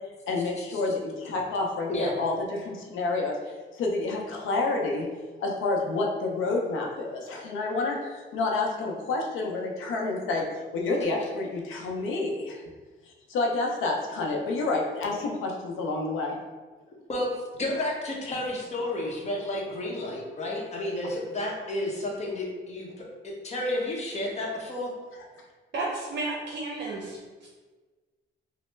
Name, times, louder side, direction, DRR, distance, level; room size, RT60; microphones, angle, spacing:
voice 1, 0.3-3.3 3.7-5.1 5.4-10.4 10.7-12.6 13.3-16.4 17.8-17.9, left 3 dB, 85° left, 0 dB, 0.6 m, -29 dB
voice 2, 17.6-24.9, left 1 dB, 35° left, -2 dB, 0.8 m, -31 dB
voice 3, 25.7-27.5, right 2 dB, 60° right, -4 dB, 0.6 m, -33 dB
3.0 x 2.0 x 3.2 m, 1.3 s
cardioid pair, 90°, 20 cm